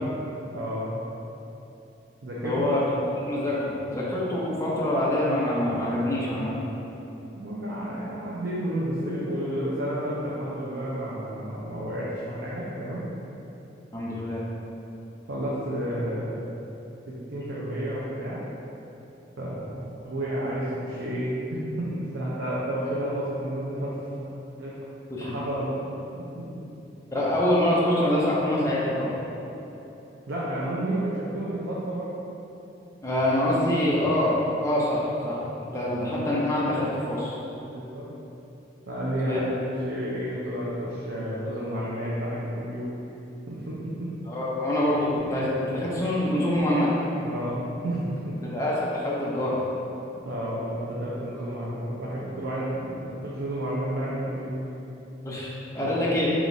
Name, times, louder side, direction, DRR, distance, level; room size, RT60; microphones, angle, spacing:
voice 1, 0.3-1.0 2.2-2.6 7.3-13.0 15.3-16.4 17.1-18.4 19.4-23.9 24.6-24.7 25.2-25.8 26.1-26.5 30.3-32.2 37.6-38.1 38.9-39.4 39.8-42.9 43.5-44.1 47.2-48.3 50.3-54.6 55.8-55.9, right 1 dB, 85° right, -7 dB, 0.6 m, -31 dB
voice 2, 2.4-2.8 3.1-6.6 13.9-14.4 25.1-25.3 27.1-29.1 33.0-37.4 39.3-39.5 44.3-46.9 48.5-49.6 55.2-56.3, left 1 dB, 15° left, -7 dB, 0.6 m, -25 dB
4.9 x 3.0 x 2.6 m, 3.0 s
head